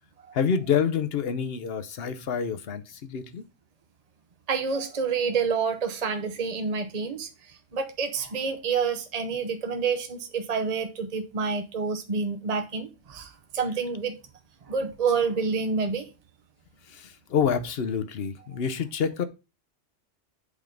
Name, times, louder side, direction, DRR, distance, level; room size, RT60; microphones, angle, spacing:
voice 1, 0.3-3.4 16.9-19.2, left 7 dB, 60° left, 1.0 m, -27 dB
voice 2, 4.5-7.3 7.7-14.1 14.7-16.1, right 5 dB, 35° right, 0.9 m, -28 dB
8.3 x 3.7 x 5.2 m
omnidirectional pair, 1.2 m